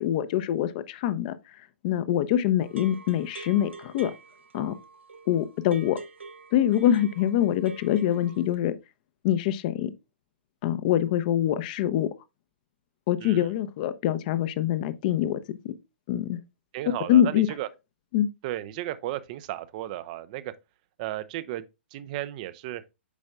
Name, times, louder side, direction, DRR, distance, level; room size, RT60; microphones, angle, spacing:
voice 1, 0.0-1.3 1.8-4.1 4.5-4.7 5.3-6.0 6.5-8.7 9.2-9.9 10.6-12.1 13.1-15.7 16.1-16.4 17.1-17.5 18.1-18.3, left 11 dB, 40° left, 0.7 m, -24 dB
sound 1, 2.6-8.5, right 4 dB, 85° right, 1.1 m, -46 dB
voice 2, 13.2-13.5 16.7-17.7 18.4-20.5 21.0-21.6 21.9-22.8, right 14 dB, 40° right, 0.5 m, -34 dB
8.2 x 5.2 x 2.3 m
figure-of-eight pair, 120°, 6 cm